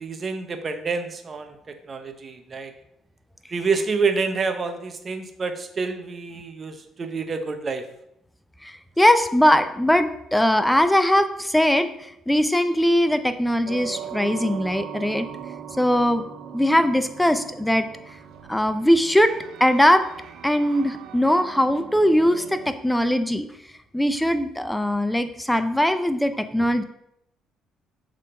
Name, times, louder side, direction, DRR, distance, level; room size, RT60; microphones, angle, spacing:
voice 1, 0.0-2.7 3.5-7.8, right 4 dB, 35° right, 7 dB, 0.9 m, -28 dB
voice 2, 8.6-15.3 15.8-16.2 16.5-17.9 18.5-19.3 19.6-20.0 20.4-23.5 23.9-26.8, equal, 5° left, 10 dB, 0.6 m, -20 dB
sound 1, 13.7-22.7, right 8 dB, 75° right, 0.6 m, -39 dB
6.7 x 3.7 x 5.0 m, 0.78 s
cardioid pair, 90°, 0 cm